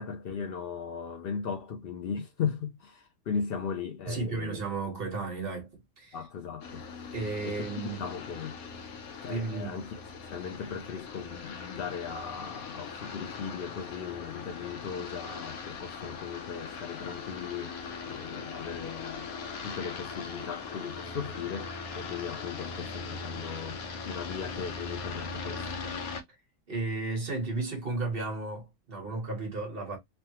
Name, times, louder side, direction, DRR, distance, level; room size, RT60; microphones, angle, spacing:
voice 1, 0.0-4.6 6.1-7.1 7.4-8.6 9.2-9.9 10.3-17.8 18.1-19.3 19.6-25.7, left 6 dB, 65° left, 0.6 m, -37 dB
voice 2, 4.1-5.7 6.0-6.2 7.1-8.0 9.3-9.8 26.7-30.0, right 3 dB, 45° right, 1.3 m, -33 dB
sound 1, 6.6-26.2, left 5 dB, 85° left, 1.1 m, -40 dB
3.2 x 2.1 x 2.8 m
omnidirectional pair, 1.5 m